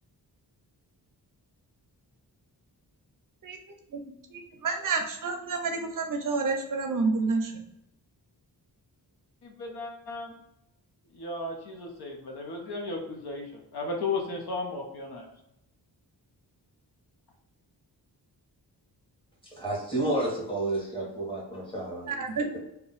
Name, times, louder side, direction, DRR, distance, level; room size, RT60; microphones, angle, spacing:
voice 1, 4.3-7.5 22.0-22.6, right 4 dB, 55° right, 4 dB, 0.5 m, -29 dB
voice 2, 9.4-10.3 11.1-15.3, left 3 dB, 70° left, 1 dB, 0.8 m, -35 dB
voice 3, 19.4-22.2, right 1 dB, 15° left, -4 dB, 1.3 m, -31 dB
2.7 x 2.2 x 4.0 m, 0.81 s
wide cardioid pair, 95°, 40 cm